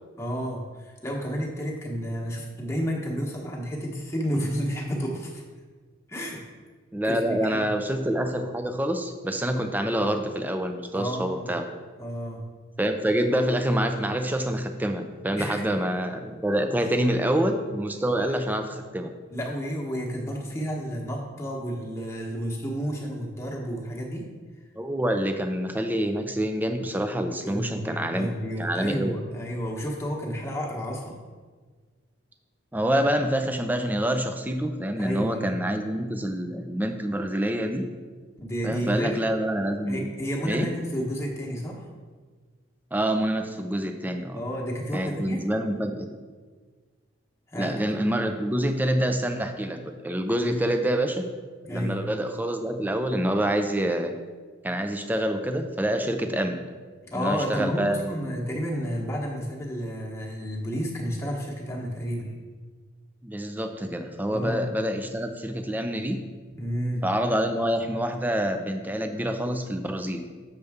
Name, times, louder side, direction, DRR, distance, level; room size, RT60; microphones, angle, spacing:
voice 1, 0.2-5.4 6.1-6.4 7.0-7.7 10.9-11.5 12.0-12.4 15.4-15.9 16.8-16.9 19.3-24.3 27.4-31.2 35.0-35.5 38.4-39.1 39.9-41.9 44.3-45.5 47.5-47.8 50.4-50.7 51.6-52.0 57.0-62.4 64.3-64.7 66.5-67.1, equal, 15° left, -2 dB, 1.1 m, -31 dB
voice 2, 6.9-11.7 12.8-19.1 24.8-28.3 28.6-29.1 32.7-37.9 38.6-40.1 40.4-40.7 42.9-44.4 44.9-46.1 47.5-51.2 51.7-54.1 54.6-56.6 57.1-58.2 63.2-66.2 67.0-70.2, right 1 dB, 10° right, 6 dB, 0.4 m, -26 dB
6.7 x 6.6 x 3.5 m, 1.5 s
head